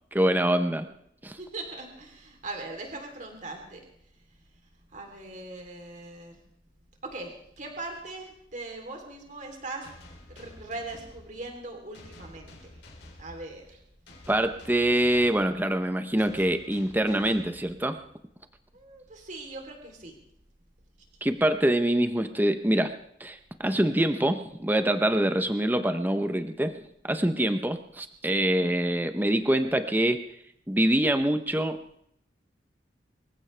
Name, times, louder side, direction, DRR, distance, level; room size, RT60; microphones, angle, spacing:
voice 1, 0.1-0.9 1.2-1.4 14.3-18.0 21.2-22.9 23.2-30.2 30.7-31.8, right 1 dB, 10° right, 8 dB, 0.7 m, -25 dB
voice 2, 1.4-3.8 4.9-6.4 7.0-9.8 10.3-12.7 13.2-13.8 18.7-20.1 28.4-28.7, right 2 dB, 45° right, 2 dB, 3.3 m, -40 dB
sound 1, 9.8-18.3, left 1 dB, 75° left, 3.4 m, -51 dB
24.5 x 15.5 x 3.3 m, 0.72 s
head